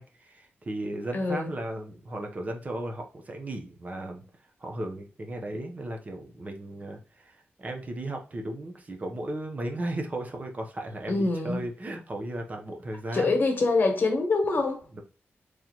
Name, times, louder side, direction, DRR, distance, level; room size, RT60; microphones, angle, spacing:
voice 1, 0.0-4.2 4.6-13.3 14.9-15.0, right 1 dB, 35° right, 0.8 m, -36 dB
voice 2, 1.1-1.5 11.1-11.6 13.1-14.8, left 3 dB, 45° left, 1.3 m, -25 dB
4.0 x 3.2 x 2.9 m
wide cardioid pair, 130°, 4 cm